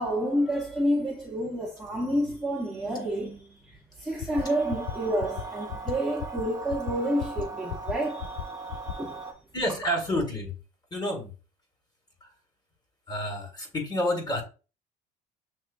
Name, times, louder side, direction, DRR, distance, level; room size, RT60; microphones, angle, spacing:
voice 1, 0.0-9.3, equal, ahead, 1.3 m, -29 dB
sound 1, 4.2-4.4 4.7-4.9 5.2-5.4 5.7-5.9 6.2-6.4 6.7-6.9 7.2-7.4 7.7-7.9 8.2-8.4 8.7-8.9, left 13 dB, 90° left, 0.5 m, -33 dB
sound 2, 4.3-9.3, right 3 dB, 20° right, 1.1 m, -39 dB
voice 2, 9.5-10.5 10.9-11.3 12.2-12.3 13.1-14.4, left 1 dB, 25° left, 1.9 m, -29 dB
6.5 x 3.0 x 2.6 m
cardioid pair, 110°, 17 cm